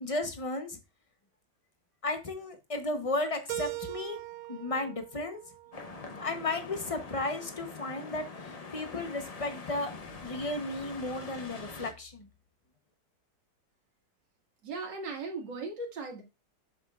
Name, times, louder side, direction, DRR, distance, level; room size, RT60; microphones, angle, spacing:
voice 1, 0.0-0.8 2.0-4.2 4.5-5.4 6.2-10.0 10.2-12.3, left 2 dB, 30° left, 7 dB, 0.6 m, -34 dB
Keyboard (musical), 3.5-6.4, right 19 dB, 70° right, 1.0 m, -41 dB
sound 1, 5.7-11.9, left 4 dB, 75° left, 0.3 m, -44 dB
voice 2, 14.6-16.2, right 3 dB, 90° right, 0 dB, 2.6 m, -37 dB
7.3 x 6.9 x 2.4 m, 0.25 s
omnidirectional pair, 1.9 m